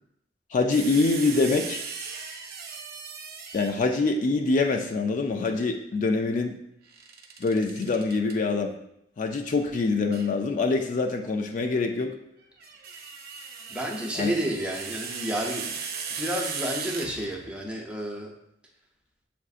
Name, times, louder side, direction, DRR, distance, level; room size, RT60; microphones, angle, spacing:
voice 1, 0.5-1.8 3.5-6.6 7.4-8.7 9.2-12.1 14.1-14.3, left 3 dB, 45° left, 3 dB, 0.3 m, -25 dB
sound 1, 0.7-4.0 6.9-8.3 10.1-10.3 12.4-17.6, right 6 dB, 55° right, 0.5 m, -37 dB
voice 2, 13.7-15.7 16.2-18.3, equal, 5° right, -1 dB, 0.6 m, -31 dB
7.0 x 2.5 x 2.4 m, 0.80 s
head